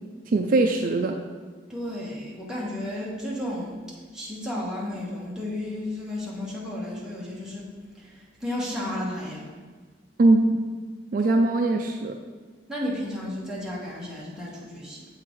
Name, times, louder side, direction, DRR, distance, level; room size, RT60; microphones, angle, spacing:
voice 1, 0.3-1.2 10.2-10.6 11.1-12.2, right 2 dB, 45° right, 4 dB, 0.4 m, -21 dB
voice 2, 1.7-3.8 4.1-7.7 8.0-9.5 12.7-15.1, left 1 dB, 5° right, -6 dB, 1.3 m, -33 dB
7.6 x 3.8 x 4.6 m, 1.5 s
head